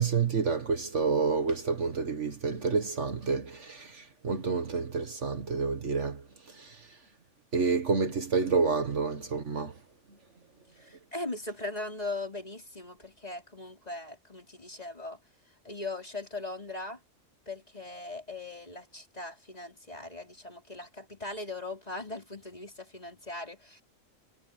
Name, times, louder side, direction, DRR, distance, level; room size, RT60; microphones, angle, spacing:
voice 1, 0.0-6.2 6.6-6.8 7.5-9.7, right 5 dB, 60° right, 1.9 m, -29 dB
voice 2, 10.8-15.2 15.6-17.0 17.5-23.8, left 2 dB, 30° left, 5.3 m, -39 dB
omnidirectional pair, 1.4 m